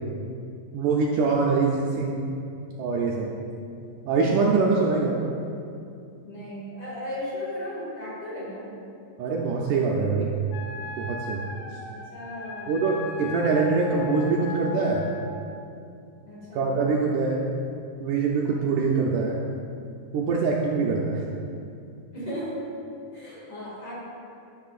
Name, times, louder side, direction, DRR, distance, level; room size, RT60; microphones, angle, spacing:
voice 1, 0.7-2.3 2.8-3.3 4.1-5.2 9.2-10.3 11.0-11.4 12.7-15.1 16.6-17.4 18.0-19.4 20.1-21.2, right 4 dB, 75° right, -2 dB, 1.9 m, -24 dB
voice 2, 6.2-8.7 11.9-12.9 16.3-16.8 22.1-22.6 23.1-23.9, left 1 dB, 45° left, -7 dB, 2.8 m, -36 dB
Wind instrument woodwind instrument, 10.5-15.4, left 3 dB, 90° left, 2.6 m, -38 dB
14.0 x 6.4 x 2.4 m, 2.5 s
omnidirectional pair, 4.1 m